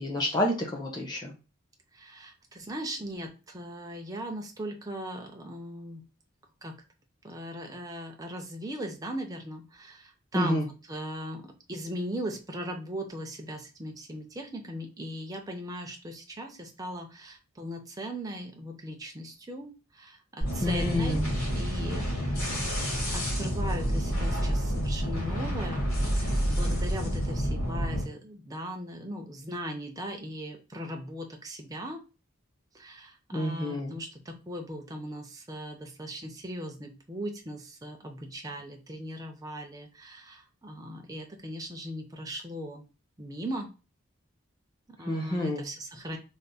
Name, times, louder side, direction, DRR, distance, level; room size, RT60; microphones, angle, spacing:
voice 1, 0.0-1.3 10.3-10.6 20.6-21.3 33.3-34.0 45.1-45.7, left 1 dB, 20° left, 0 dB, 0.8 m, -29 dB
voice 2, 1.9-6.0 6.6-6.7 7.2-10.6 10.9-22.1 22.4-22.7 23.1-32.0 32.7-42.8 43.2-43.7 44.9-46.2, equal, 15° right, 3 dB, 0.5 m, -39 dB
sound 1, 20.4-28.0, equal, 85° left, 1.7 m, -29 dB
3.4 x 2.1 x 4.0 m, 0.33 s
head